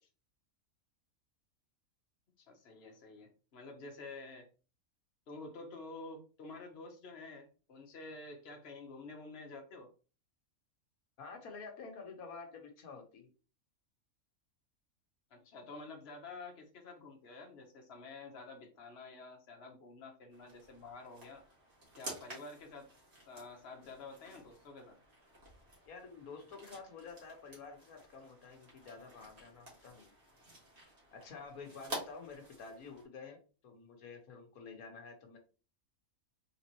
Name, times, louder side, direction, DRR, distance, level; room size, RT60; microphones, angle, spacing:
voice 1, 2.4-4.5 5.3-9.9 15.3-21.4 22.0-22.9 23.3-25.0, left 3 dB, 50° left, 2 dB, 1.2 m, -49 dB
voice 2, 11.2-13.3 25.9-30.1 31.1-35.4, left 4 dB, 85° left, 3 dB, 1.5 m, -49 dB
sound 1, 20.3-33.0, right 1 dB, 45° right, 2.1 m, -51 dB
4.1 x 3.8 x 2.9 m, 0.35 s
omnidirectional pair, 1.5 m